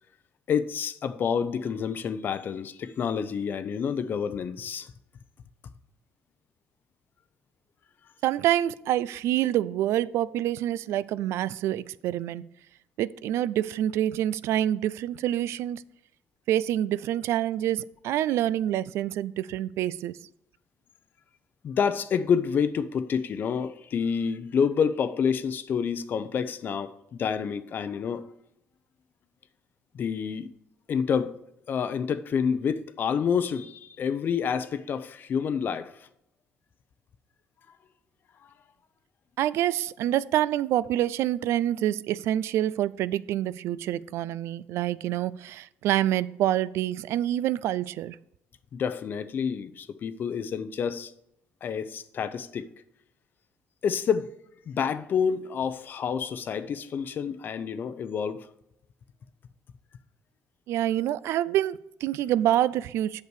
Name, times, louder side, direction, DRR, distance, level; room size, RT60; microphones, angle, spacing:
voice 1, 0.5-4.9 21.6-28.2 29.9-30.5 30.9-31.3 31.7-35.9 48.7-51.1 51.6-52.7 53.8-54.3 54.7-58.5, left 7 dB, 45° left, 0.6 m, -28 dB
voice 2, 8.2-12.4 13.0-15.8 16.5-20.2 39.4-48.2 60.7-63.2, right 12 dB, 75° right, 0.3 m, -27 dB
8.1 x 6.8 x 4.7 m
cardioid pair, 130°, 5 cm